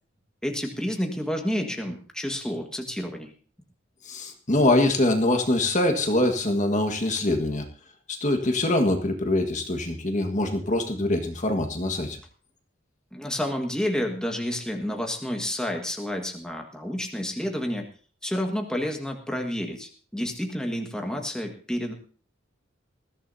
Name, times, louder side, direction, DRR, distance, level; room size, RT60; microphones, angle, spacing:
voice 1, 0.4-3.3 13.1-17.9 18.2-21.9, equal, 5° left, 2 dB, 1.7 m, -30 dB
voice 2, 4.0-7.6 8.1-12.2, left 1 dB, 40° left, 5 dB, 1.6 m, -24 dB
20.5 x 15.0 x 2.8 m, 0.40 s
head